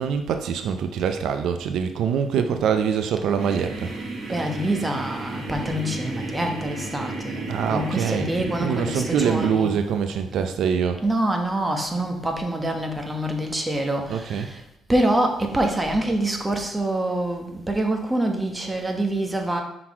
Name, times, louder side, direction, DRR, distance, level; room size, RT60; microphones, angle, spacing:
voice 1, 0.0-3.9 7.5-11.0 14.1-14.5, right 7 dB, 80° right, 7 dB, 0.4 m, -24 dB
sound 1, 3.4-9.5, right 2 dB, 60° right, 1.7 m, -33 dB
voice 2, 4.3-9.7 11.0-14.6 14.9-19.6, right 1 dB, 15° right, 3 dB, 1.1 m, -25 dB
6.0 x 3.9 x 4.7 m, 0.80 s
cardioid pair, 90°, 0 cm